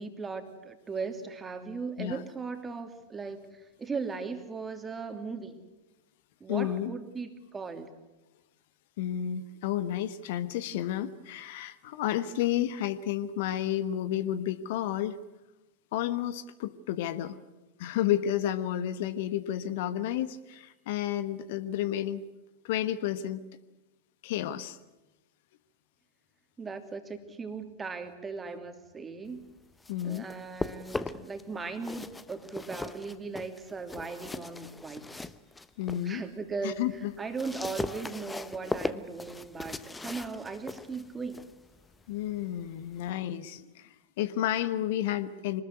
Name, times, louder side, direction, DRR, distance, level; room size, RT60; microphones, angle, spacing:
voice 1, 0.0-5.6 6.4-7.9 26.6-29.5 30.0-35.3 36.0-36.8 37.2-41.5, right 4 dB, 15° right, 6 dB, 2.8 m, -38 dB
voice 2, 6.5-6.9 9.0-15.2 15.9-17.4 17.8-22.2 22.6-23.4 24.2-24.8 29.9-30.3 35.8-36.2 36.6-37.1 42.1-43.9 44.2-45.6, left 11 dB, 50° left, 13 dB, 1.1 m, -31 dB
sound 1, 29.6-31.4 31.7-36.1 36.5-43.1, left 3 dB, 10° left, 1.0 m, -39 dB
25.5 x 20.0 x 9.7 m, 1.0 s
figure-of-eight pair, 90°, 0 cm